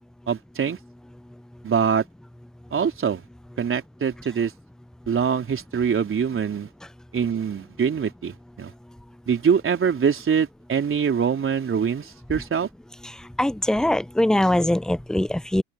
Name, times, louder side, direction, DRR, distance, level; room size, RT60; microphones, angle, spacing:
voice 1, 0.3-0.8 1.6-2.0 2.7-3.2 3.6-4.5 5.1-6.7 7.1-8.7 9.3-12.7, right 7 dB, 30° right, 4.1 m, -24 dB
voice 2, 13.0-15.6, left 1 dB, ahead, 0.8 m, -22 dB
open air
figure-of-eight pair, 65°, 40 cm